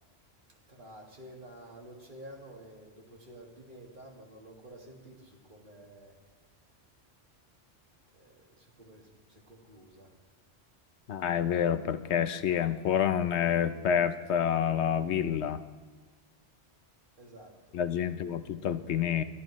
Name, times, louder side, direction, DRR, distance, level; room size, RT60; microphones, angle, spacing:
voice 1, 0.7-6.1 8.2-10.1 17.2-17.5, right 1 dB, 45° right, 0 dB, 2.1 m, -50 dB
voice 2, 11.1-15.6 17.7-19.2, left 8 dB, 70° left, 12 dB, 0.9 m, -28 dB
22.5 x 11.0 x 3.1 m, 1.4 s
omnidirectional pair, 1.2 m